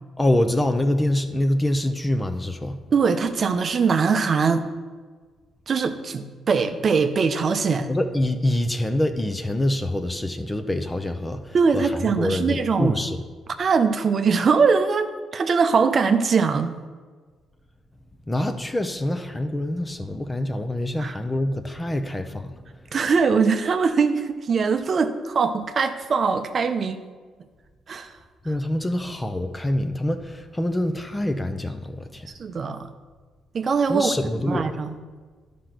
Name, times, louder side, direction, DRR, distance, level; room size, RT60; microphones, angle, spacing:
voice 1, 0.2-2.8 7.9-13.2 18.3-22.5 28.4-32.3 33.9-34.7, left 1 dB, 15° left, 8 dB, 0.7 m, -25 dB
voice 2, 2.9-4.7 5.7-7.9 11.5-13.0 13.6-16.7 21.0-21.2 22.9-27.0 27.9-28.1 32.4-32.9 33.5-35.0, right 5 dB, 45° right, 8 dB, 0.7 m, -22 dB
11.0 x 5.1 x 6.0 m, 1.5 s
cardioid pair, 90°, 0 cm